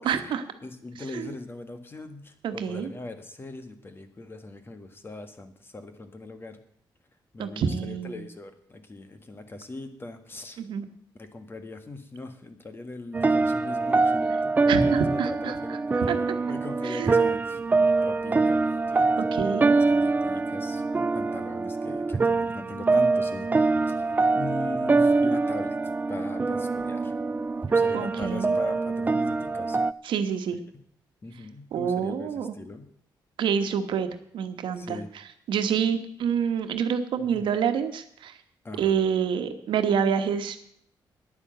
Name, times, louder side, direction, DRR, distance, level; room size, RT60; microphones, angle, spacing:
voice 1, 0.0-0.4 1.1-1.3 2.4-2.9 7.4-8.2 10.6-10.8 14.7-15.6 16.1-16.2 16.8-17.4 19.2-19.8 27.9-28.6 30.0-30.6 31.7-32.5 33.4-34.1 34.3-35.0 35.5-38.3 38.8-40.6, right 7 dB, 85° right, 8 dB, 1.3 m, -27 dB
voice 2, 0.6-6.6 7.3-10.6 11.2-16.2 16.5-17.6 18.0-18.6 18.9-19.1 19.4-20.8 21.1-23.5 23.9-27.1 27.7-29.8 31.2-32.9 34.8-35.1 37.2-37.5 38.6-39.0, left 2 dB, 30° left, 8 dB, 1.7 m, -40 dB
sound 1, 13.1-29.9, right 3 dB, 20° right, 0.4 m, -24 dB
10.0 x 9.8 x 7.9 m, 0.67 s
cardioid pair, 110°, 8 cm